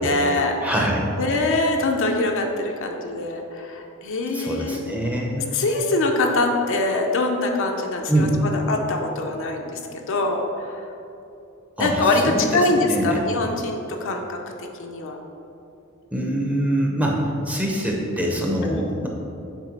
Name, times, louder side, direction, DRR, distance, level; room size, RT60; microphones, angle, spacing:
voice 1, 0.0-0.9 1.2-4.8 5.5-10.8 11.8-14.4 14.8-15.2 18.6-18.8, left 2 dB, 60° left, 2 dB, 0.6 m, -23 dB
voice 2, 0.6-1.1 4.3-5.5 8.1-8.4 11.8-13.2 16.1-19.1, right 1 dB, 5° right, -1 dB, 0.7 m, -24 dB
7.3 x 3.2 x 5.2 m, 2.8 s
head